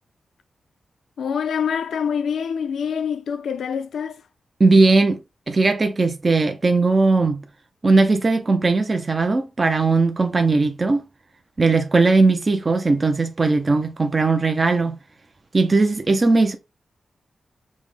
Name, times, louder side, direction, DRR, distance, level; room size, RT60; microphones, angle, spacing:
voice 1, 1.2-4.2, left 7 dB, 90° left, 0.3 m, -25 dB
voice 2, 4.6-5.2 5.5-7.4 7.8-11.0 11.6-15.0 15.5-16.6, right 3 dB, 30° right, 0.4 m, -18 dB
5.3 x 2.0 x 3.2 m
wide cardioid pair, 105°, 0 cm